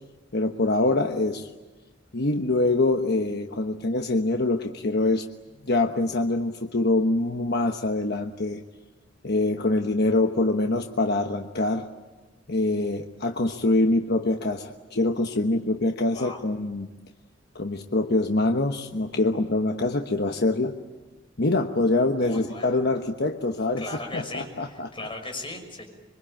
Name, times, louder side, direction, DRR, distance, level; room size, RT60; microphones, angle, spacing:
voice 1, 0.3-1.5 2.1-5.2 5.6-8.6 9.2-11.9 12.5-16.9 17.5-20.7 21.4-23.8 24.1-24.9, left 2 dB, 55° left, 4 dB, 1.2 m, -24 dB
voice 2, 22.2-22.8 23.8-25.8, left 2 dB, 25° left, 3 dB, 6.1 m, -37 dB
26.5 x 24.0 x 8.9 m, 1.2 s
head